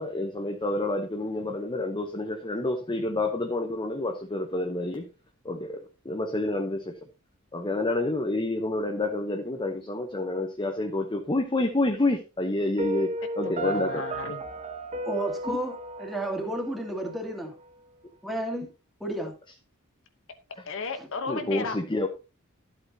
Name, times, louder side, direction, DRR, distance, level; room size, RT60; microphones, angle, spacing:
voice 1, 0.0-5.1 5.4-6.9 7.5-14.0 15.5-15.6 21.3-22.1, left 2 dB, 20° left, 4 dB, 0.9 m, -28 dB
Piano, 12.8-17.7, right 1 dB, 35° right, 1.1 m, -34 dB
voice 2, 13.4-14.4 20.6-21.8, left 4 dB, 65° left, 8 dB, 1.0 m, -34 dB
voice 3, 15.0-15.7 16.0-17.5 18.2-18.7 19.0-19.3, right 1 dB, ahead, 0 dB, 2.3 m, -31 dB
12.5 x 8.0 x 2.8 m, 0.30 s
head